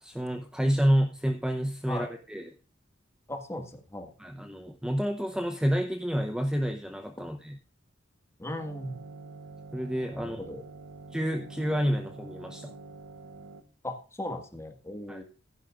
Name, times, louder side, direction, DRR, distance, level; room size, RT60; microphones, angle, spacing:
voice 1, 0.0-2.5 4.2-7.6 9.7-10.4 11.1-12.7 15.1-15.2, equal, 5° right, 6 dB, 0.7 m, -29 dB
voice 2, 3.3-4.1 8.4-9.0 10.1-10.6 13.8-15.2, left 1 dB, 15° left, 5 dB, 1.7 m, -37 dB
sound 1, 8.6-13.6, right 3 dB, 75° right, 1.1 m, -46 dB
15.5 x 11.0 x 2.4 m, 0.38 s
head